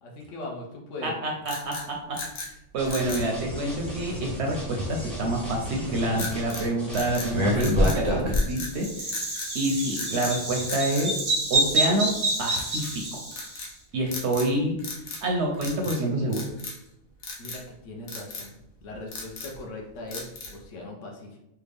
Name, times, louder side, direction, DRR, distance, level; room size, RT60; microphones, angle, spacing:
voice 1, 0.0-1.2 17.4-21.4, left 2 dB, 65° left, 0 dB, 1.0 m, -40 dB
voice 2, 1.0-2.2 2.7-9.3 9.5-11.2 11.5-12.1 12.4-13.2 13.9-14.8 15.2-16.4, right 1 dB, 65° right, 1 dB, 0.7 m, -27 dB
sound 1, 1.4-2.5 2.9-3.3 6.2-6.7 6.9-8.0 8.3-8.7 9.1-9.5 9.9-10.4 10.7-11.9 12.5-13.0 13.3-13.7 14.1-14.5 14.8-15.3 15.5-16.0 16.3-16.9 17.2-17.6 18.1-18.5 18.9-19.6 20.1-20.6, left 3 dB, 90° left, 1.1 m, -37 dB
sound 2, 2.8-8.1, left 1 dB, ahead, 0.7 m, -37 dB
Bird vocalization bird call bird song, 7.3-13.6, right 1 dB, 40° right, 0.4 m, -26 dB
3.4 x 2.2 x 3.3 m, 0.86 s
omnidirectional pair, 1.4 m